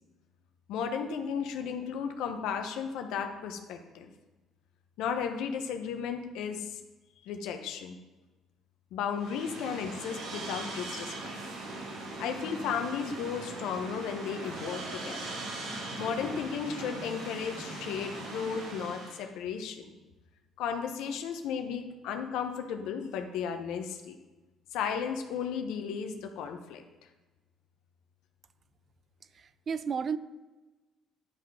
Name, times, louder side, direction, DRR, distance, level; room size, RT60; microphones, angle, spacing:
voice 1, 0.7-4.1 5.0-6.8 7.2-8.0 8.9-11.1 12.2-15.3 16.0-19.9 20.6-24.2 24.7-26.8, left 7 dB, 75° left, 6 dB, 1.0 m, -34 dB
sound 1, 9.2-19.3, right 2 dB, 75° right, 2.3 m, -40 dB
voice 2, 29.3-30.2, right 6 dB, 50° right, 14 dB, 0.5 m, -32 dB
11.0 x 5.8 x 4.9 m, 1.2 s
hypercardioid pair, 55°, 0 cm